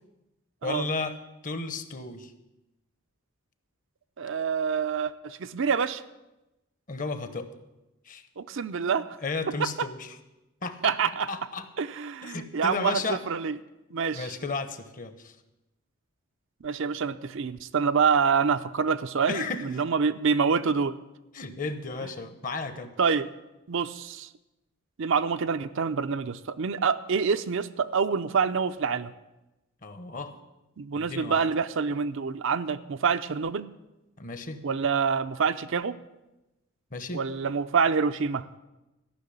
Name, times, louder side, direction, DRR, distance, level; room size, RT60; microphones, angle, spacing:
voice 1, 0.6-1.2 1.4-2.3 6.9-7.5 8.0-8.2 9.2-10.2 10.6-11.0 11.3-11.7 12.2-13.2 14.1-15.3 19.3-19.7 21.3-22.9 29.8-30.3 31.0-31.4 34.2-34.6 36.9-37.2, left 3 dB, 40° left, 10 dB, 1.0 m, -33 dB
voice 2, 4.2-6.0 8.4-9.2 9.6-9.9 10.8-11.3 11.8-13.6 13.9-14.3 16.6-21.0 23.0-23.3 23.7-24.3 25.0-29.1 30.8-33.7 34.6-35.9 37.1-38.4, right 5 dB, 60° right, 11 dB, 0.5 m, -26 dB
13.5 x 6.3 x 9.9 m, 0.98 s
head